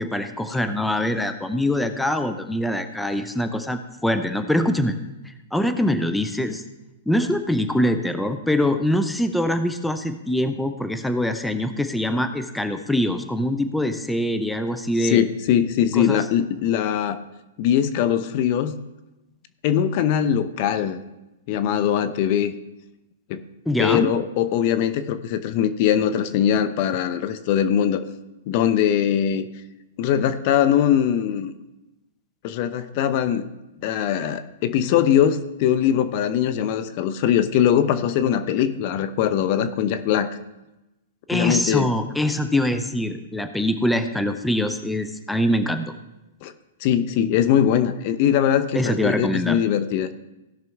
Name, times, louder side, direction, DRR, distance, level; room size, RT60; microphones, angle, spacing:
voice 1, 0.0-4.9 5.3-6.6 7.1-15.2 16.0-16.2 23.7-24.1 41.3-45.9 48.7-49.6, left 1 dB, 5° left, 8 dB, 0.7 m, -23 dB
voice 2, 15.0-17.2 17.6-18.8 19.6-21.0 21.5-22.5 23.3-23.4 23.8-28.0 28.5-29.4 30.0-31.5 32.4-33.5 33.8-40.3 41.3-41.9 46.4-46.5 46.8-50.1, left 9 dB, 50° left, 11 dB, 0.7 m, -21 dB
17.5 x 6.0 x 3.5 m, 0.98 s
hypercardioid pair, 125°, 0 cm